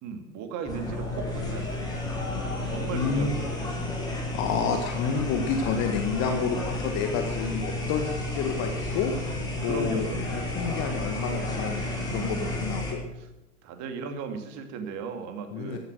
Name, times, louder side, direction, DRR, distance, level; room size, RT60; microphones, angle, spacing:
voice 1, 0.0-2.4 2.6-4.3 9.6-10.4 12.0-12.8 13.2-13.3 13.6-15.8, right 5 dB, 40° right, 6 dB, 2.7 m, -37 dB
sound 1, 0.7-12.9, left 2 dB, 10° left, 5.5 m, -32 dB
voice 2, 2.9-3.3 4.3-9.1 9.6-13.0 15.5-15.8, left 6 dB, 35° left, 5 dB, 1.7 m, -29 dB
14.0 x 12.0 x 6.4 m, 0.98 s
figure-of-eight pair, 100°, 45 cm